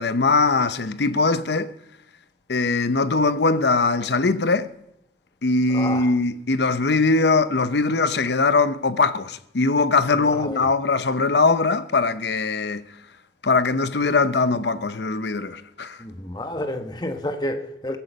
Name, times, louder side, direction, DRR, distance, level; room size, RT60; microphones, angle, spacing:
voice 1, 0.0-1.7 2.5-4.7 5.4-12.9 13.4-16.0, left 3 dB, 65° left, 0.7 m, -21 dB
voice 2, 5.7-6.1 10.1-10.6 16.0-18.0, left 1 dB, 20° left, 1.1 m, -30 dB
21.5 x 10.5 x 5.3 m
head